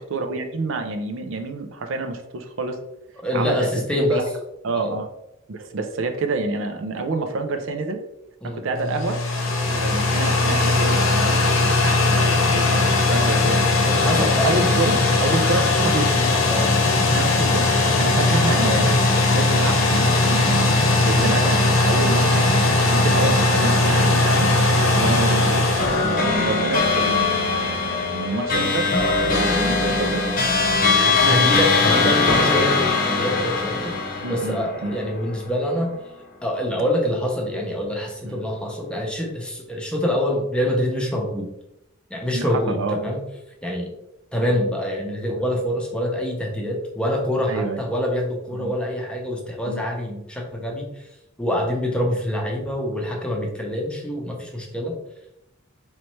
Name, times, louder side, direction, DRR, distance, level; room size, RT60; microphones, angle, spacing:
voice 1, 0.0-2.8 3.3-4.2 4.6-5.1 5.5-8.0 8.4-9.2 9.7-13.6 14.1-16.3 17.1-17.7 18.0-22.5 22.9-24.5 25.0-28.9 29.2-30.2 30.8-31.5 32.0-32.4 34.2-34.9 38.2-38.4 42.3-43.0 47.5-47.8 48.5-48.7 49.7-49.8, right 3 dB, 70° right, 5 dB, 0.5 m, -28 dB
voice 2, 3.2-4.2 4.7-4.9 8.4-8.7 9.7-9.9 13.8-14.7 16.5-16.7 18.6-18.9 21.1-21.3 25.0-25.2 31.3-35.9 36.4-41.5 42.1-43.2 43.6-43.9 44.3-51.0 51.4-54.9, equal, 5° left, -1 dB, 0.8 m, -25 dB
sound 1, 8.7-26.9, left 2 dB, 85° left, 0.9 m, -19 dB
sound 2, 25.8-35.4, left 4 dB, 45° left, 0.9 m, -21 dB
4.1 x 3.2 x 3.1 m, 0.85 s
head